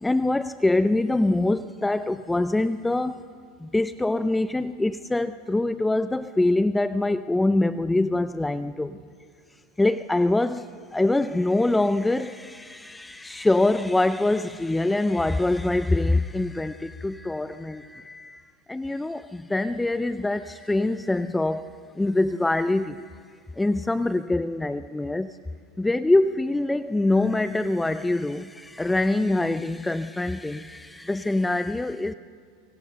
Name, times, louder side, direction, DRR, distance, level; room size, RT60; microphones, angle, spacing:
voice 1, 0.0-3.2 3.6-9.0 9.8-21.7 22.0-23.1 23.6-25.4 25.8-32.1, left 2 dB, 10° left, 13 dB, 0.5 m, -24 dB
25.0 x 23.5 x 6.7 m, 2.1 s
hypercardioid pair, 105°, 0 cm